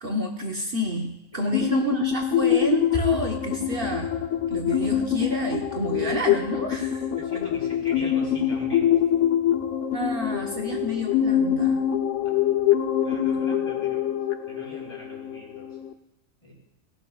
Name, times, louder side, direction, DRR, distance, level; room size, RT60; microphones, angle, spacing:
voice 1, 0.0-4.2 4.5-7.0 9.9-11.8, right 1 dB, 50° right, 1 dB, 1.2 m, -29 dB
voice 2, 1.3-1.7 7.2-9.0 12.2-12.4 13.0-14.1 14.5-15.8 16.4-16.5, left 1 dB, 25° left, -3 dB, 3.7 m, -42 dB
sound 1, 1.5-15.9, left 10 dB, 80° left, 1.0 m, -24 dB
sound 2, 2.0-13.4, equal, 25° right, 6.3 m, -42 dB
17.0 x 17.0 x 2.3 m, 0.91 s
omnidirectional pair, 1.2 m